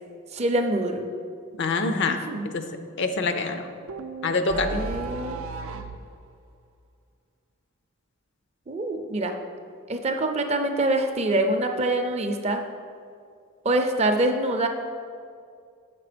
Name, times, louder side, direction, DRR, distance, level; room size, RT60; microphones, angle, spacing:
voice 1, 0.3-1.1 2.1-2.5 4.5-5.4 8.7-9.4 9.9-12.6 13.6-14.7, right 1 dB, 30° right, 5 dB, 0.5 m, -25 dB
voice 2, 1.6-2.2 2.5-2.6 3.0-3.7 4.2-4.8, left 3 dB, 55° left, 7 dB, 0.5 m, -25 dB
sound 1, 3.9-6.0, right 3 dB, 75° right, 0.5 m, -34 dB
7.1 x 5.9 x 5.0 m, 2.3 s
head